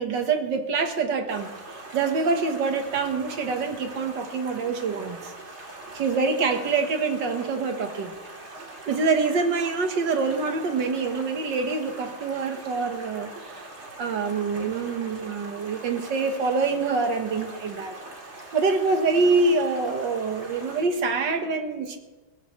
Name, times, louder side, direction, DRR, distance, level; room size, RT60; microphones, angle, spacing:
voice 1, 0.0-5.3 5.9-8.1 8.9-13.6 14.0-18.0 18.5-22.0, right 4 dB, 65° right, 6 dB, 2.0 m, -25 dB
Stream, 1.3-20.8, right 2 dB, 35° right, 2.4 m, -42 dB
22.0 x 16.0 x 3.2 m, 1.2 s
omnidirectional pair, 2.2 m